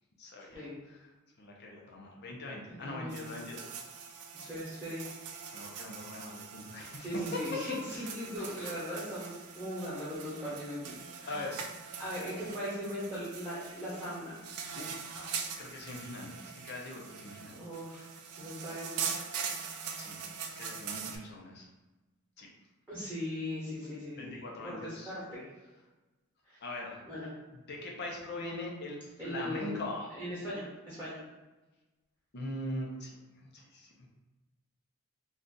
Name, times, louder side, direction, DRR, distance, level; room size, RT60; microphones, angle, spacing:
voice 1, 0.2-0.7 0.9-1.1 1.4-3.7 5.5-7.7 7.9-8.1 8.4-8.8 11.3-11.6 14.8-17.6 20.0-20.2 20.6-21.7 22.4-22.5 24.2-25.2 26.6-27.0 27.7-30.1 32.3-33.2 33.5-34.1, left 1 dB, 50° left, -1 dB, 0.5 m, -41 dB
voice 2, 2.7-3.3 4.3-5.0 7.0-11.5 12.0-14.4 17.5-18.1 18.4-19.1 22.9-25.5 26.5-26.6 27.1-27.3 29.2-29.8 30.2-31.2, equal, 5° right, -10 dB, 1.0 m, -39 dB
sound 1, 3.1-21.2, right 6 dB, 85° right, 0.4 m, -42 dB
2.6 x 2.3 x 3.7 m, 1.1 s
head